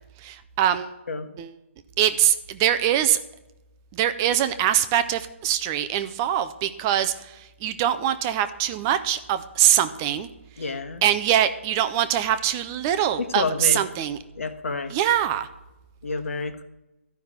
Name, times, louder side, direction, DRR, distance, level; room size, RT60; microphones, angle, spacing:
voice 1, 0.2-0.9 1.4-1.5 2.0-3.2 3.9-10.3 10.6-10.7 11.0-14.2 14.9-15.5, right 11 dB, 15° right, 11 dB, 0.3 m, -23 dB
voice 2, 10.6-11.0 13.2-13.8 14.4-14.9 16.0-16.6, left 4 dB, 80° left, 8 dB, 1.5 m, -29 dB
13.0 x 5.8 x 9.4 m, 0.99 s
hypercardioid pair, 170°, 7 cm